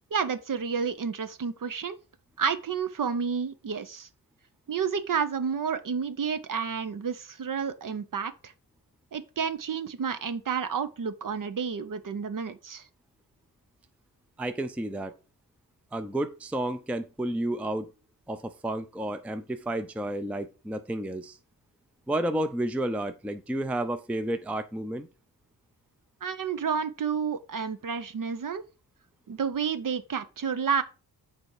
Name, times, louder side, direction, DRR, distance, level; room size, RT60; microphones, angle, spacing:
voice 1, 0.1-2.0 2.4-4.1 4.7-8.5 9.1-12.9 26.2-28.6 29.3-30.8, right 6 dB, 55° right, 0.7 m, -30 dB
voice 2, 14.4-15.1 15.9-17.9 18.3-21.4 22.1-25.1, right 1 dB, 5° right, 0.5 m, -31 dB
6.8 x 4.3 x 4.8 m
wide cardioid pair, 90°, 40 cm